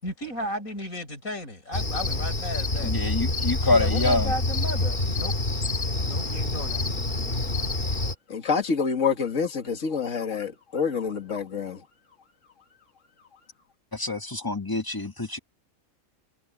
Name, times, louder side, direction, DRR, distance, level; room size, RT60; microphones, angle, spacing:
voice 1, 0.0-2.9 3.7-5.3 6.1-6.8 7.3-7.6, left 1 dB, 85° left, 7.2 m, -34 dB
Cricket, 1.7-8.1, left 2 dB, 40° left, 2.3 m, -27 dB
voice 2, 2.8-4.3 13.9-15.4, left 2 dB, 15° left, 1.4 m, -26 dB
voice 3, 8.3-11.8, left 5 dB, 65° left, 2.3 m, -27 dB
omnidirectional pair, 1.4 m